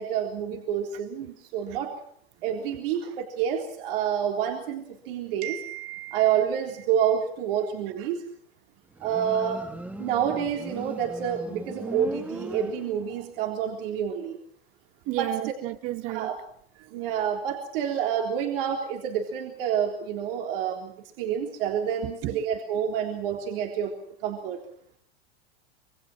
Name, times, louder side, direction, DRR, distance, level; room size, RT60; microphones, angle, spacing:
voice 1, 0.0-1.9 2.4-5.6 6.1-8.2 9.0-9.6 10.0-14.4 15.2-15.3 16.1-16.4 16.9-23.9 24.2-24.6, right 8 dB, 70° right, 3.7 m, -28 dB
voice 2, 5.4-6.4 8.0-8.1 13.1-13.2 15.1-16.3 16.8-17.1 22.0-22.6, right 17 dB, 50° right, 1.1 m, -34 dB
Motorcycle, 8.9-13.3, right 1 dB, 5° right, 1.8 m, -39 dB
27.0 x 21.5 x 6.2 m
supercardioid pair, 115°, 29 cm